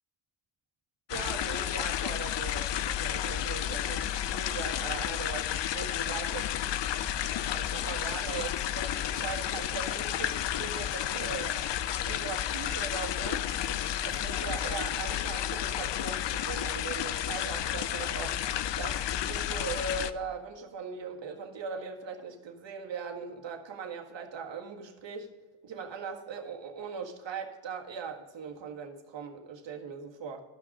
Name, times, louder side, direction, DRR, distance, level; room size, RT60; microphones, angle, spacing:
sound 1, 1.1-20.1, left 11 dB, 60° left, 0.6 m, -32 dB
voice 1, 1.1-6.5 7.5-11.6 12.0-13.5 14.0-18.4 18.8-25.3 25.6-30.4, right 5 dB, 60° right, 2 dB, 1.8 m, -40 dB
12.5 x 6.2 x 5.4 m, 1.3 s
cardioid pair, 70°, 49 cm